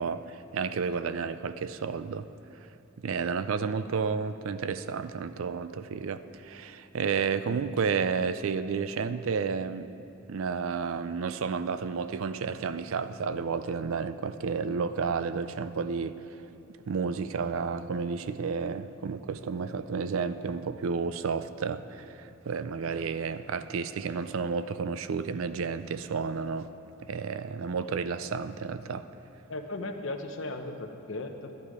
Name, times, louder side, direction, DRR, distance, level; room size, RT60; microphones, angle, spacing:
voice 1, 0.0-2.3 3.0-9.9 10.3-16.2 16.9-26.7 27.0-29.1, right 5 dB, 75° right, 12 dB, 0.4 m, -31 dB
voice 2, 29.5-31.6, left 2 dB, 65° left, 6 dB, 0.8 m, -36 dB
11.0 x 10.5 x 4.8 m, 2.8 s
head